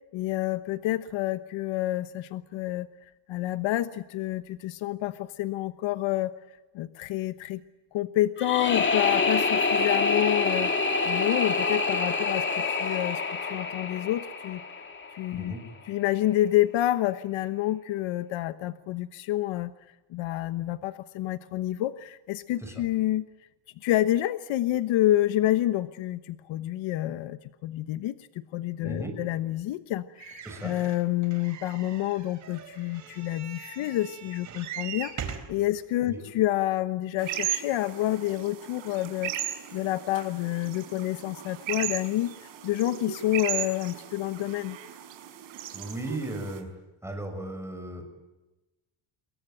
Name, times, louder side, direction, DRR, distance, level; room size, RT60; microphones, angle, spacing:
voice 1, 0.1-2.9 3.3-6.3 6.7-7.6 7.9-14.6 15.1-15.5 15.8-19.7 20.1-23.2 23.8-39.3 39.7-44.8, left 14 dB, 70° left, 11 dB, 1.2 m, -28 dB
sound 1, 8.4-15.4, left 4 dB, 25° left, 2.5 m, -27 dB
sound 2, 30.2-35.6 36.3-36.4 36.6-36.7, right 8 dB, 35° right, 4.3 m, -41 dB
sound 3, 37.2-46.6, right 12 dB, 70° right, 5.6 m, -36 dB
voice 2, 45.7-46.7 47.0-48.1, right 2 dB, 5° right, 5 dB, 6.4 m, -36 dB
28.0 x 22.5 x 9.1 m, 1.1 s
cardioid pair, 165°, 48 cm